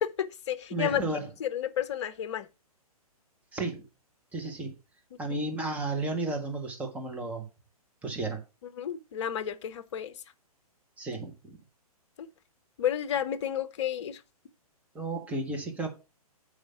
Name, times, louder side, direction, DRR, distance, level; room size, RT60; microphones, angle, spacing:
voice 1, 0.0-1.0 1.4-2.5 8.8-10.1 12.2-12.3 12.8-14.2, left 10 dB, 50° left, 0.8 m, -31 dB
voice 2, 0.7-1.3 3.5-3.9 4.3-4.7 5.2-7.4 8.0-8.4 11.0-11.6 14.9-15.9, right 2 dB, 5° right, 1.3 m, -33 dB
7.2 x 4.9 x 5.7 m
figure-of-eight pair, 125°, 20 cm